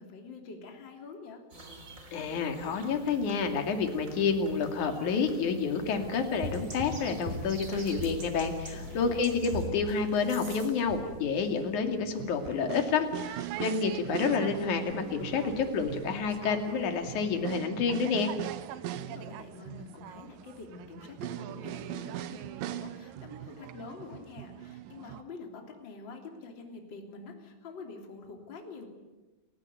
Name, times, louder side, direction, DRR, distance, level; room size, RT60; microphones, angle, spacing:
voice 1, 0.0-1.4 8.7-9.2 18.7-28.9, left 4 dB, 30° left, 3 dB, 3.5 m, -46 dB
sound 1, 1.5-9.6, right 1 dB, 20° right, 3.7 m, -48 dB
voice 2, 2.1-18.3, left 5 dB, 55° left, 5 dB, 3.7 m, -29 dB
sound 2, 6.0-17.6, right 1 dB, 50° right, 6.0 m, -43 dB
sound 3, 12.1-25.2, right 12 dB, 70° right, 2.4 m, -40 dB
30.0 x 16.0 x 9.4 m, 1.2 s
omnidirectional pair, 4.5 m